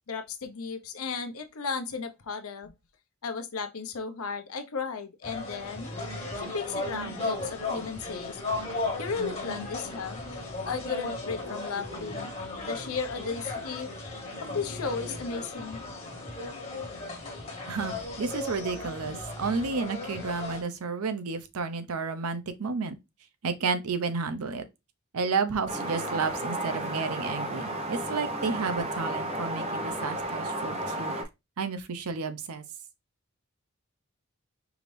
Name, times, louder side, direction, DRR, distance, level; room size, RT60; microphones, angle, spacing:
voice 1, 0.1-2.7 3.2-5.9 6.3-8.4 9.0-10.2 10.6-12.3 12.7-13.9 14.4-15.8, left 5 dB, 85° left, 0.7 m, -35 dB
sound 1, 5.2-20.6, left 2 dB, 30° left, 1.5 m, -36 dB
voice 2, 17.7-22.9 23.4-24.6 25.1-31.1 31.6-32.6, right 4 dB, 90° right, 0.7 m, -31 dB
sound 2, 25.7-31.2, right 1 dB, 30° right, 0.7 m, -33 dB
4.9 x 2.6 x 3.2 m
head